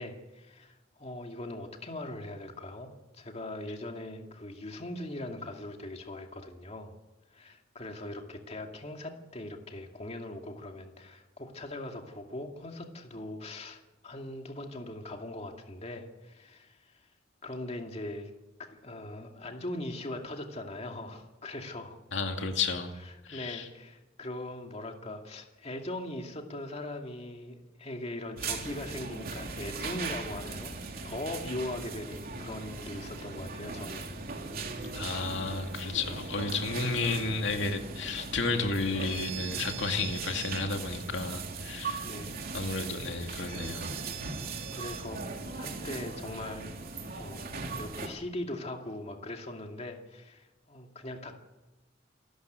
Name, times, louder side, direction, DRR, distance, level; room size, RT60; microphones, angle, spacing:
voice 1, 0.0-6.9 7.3-17.0 17.4-18.3 18.6-22.0 23.0-30.7 31.0-34.2 42.0-42.4 44.7-46.7 47.1-51.3, left 1 dB, 35° left, 3 dB, 2.4 m, -40 dB
voice 2, 22.1-22.9 23.2-23.7 34.9-42.1 42.5-43.9, left 3 dB, 75° left, 4 dB, 2.5 m, -32 dB
sound 1, 28.4-48.1, right 4 dB, 55° right, 3.3 m, -39 dB
28.0 x 13.5 x 9.4 m, 1.1 s
head